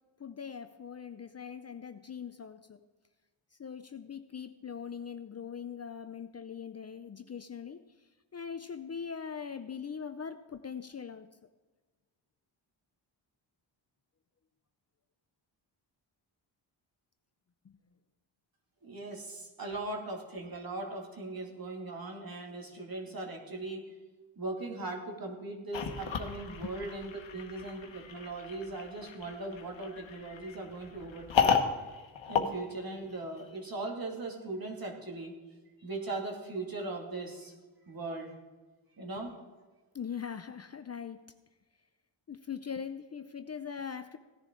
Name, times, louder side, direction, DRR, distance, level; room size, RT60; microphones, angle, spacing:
voice 1, 0.2-2.8 3.5-11.3 17.6-17.8 39.9-41.2 42.3-44.2, left 7 dB, 35° left, 9 dB, 0.5 m, -41 dB
voice 2, 18.8-23.9 24.4-31.5 32.3-35.3 35.8-37.5 37.9-38.3 39.0-39.3, right 2 dB, 45° right, 0 dB, 2.5 m, -39 dB
sound 1, 25.7-33.4, left 6 dB, 70° left, 1.3 m, -33 dB
17.0 x 10.5 x 3.8 m, 1.3 s
cardioid pair, 80°, 47 cm